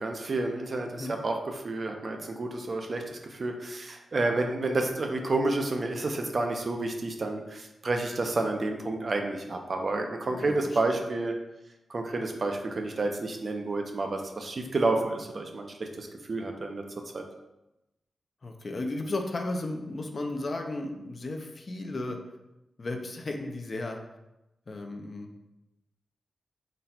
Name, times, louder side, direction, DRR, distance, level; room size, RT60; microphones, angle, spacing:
voice 1, 0.0-1.3 1.6-11.4 11.9-16.8 17.1-17.2, right 2 dB, 40° right, 4 dB, 0.4 m, -30 dB
voice 2, 10.3-11.0 18.4-22.2 22.8-24.0 24.7-25.3, left 2 dB, 35° left, 3 dB, 0.4 m, -34 dB
3.9 x 2.1 x 4.2 m, 0.94 s
wide cardioid pair, 140°, 0 cm